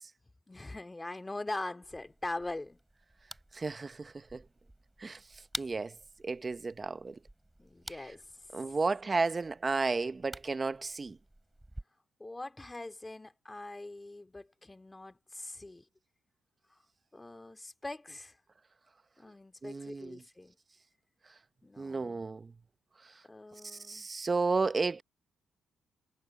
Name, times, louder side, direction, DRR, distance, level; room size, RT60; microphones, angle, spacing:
voice 1, 0.5-2.8 7.6-8.2 12.2-15.8 17.1-18.3 19.2-20.6 21.6-22.3 23.2-24.1, left 2 dB, 15° left, 2.3 m, -42 dB
sound 1, 1.8-11.8, right 1 dB, 10° right, 4.8 m, -50 dB
voice 2, 3.5-4.4 5.0-5.2 5.6-5.9 6.2-7.2 8.5-11.2 19.6-20.2 21.8-22.5 23.6-25.0, right 4 dB, 30° right, 0.9 m, -32 dB
cardioid pair, 90°, 0 cm